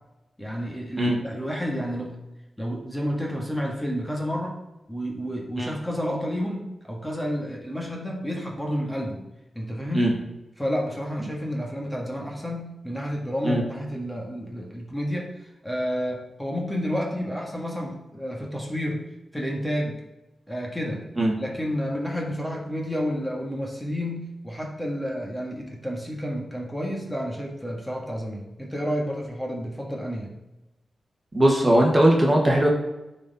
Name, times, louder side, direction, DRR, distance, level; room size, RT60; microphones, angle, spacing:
voice 1, 0.4-2.2 2.6-4.6 4.9-9.2 9.5-10.1 10.6-19.0 19.3-20.0 20.5-21.1 21.4-30.3, equal, 10° left, -1 dB, 1.8 m, -30 dB
voice 2, 31.3-32.7, right 1 dB, 25° right, -1 dB, 1.6 m, -19 dB
10.0 x 4.4 x 4.1 m, 0.98 s
cardioid pair, 80°, 0 cm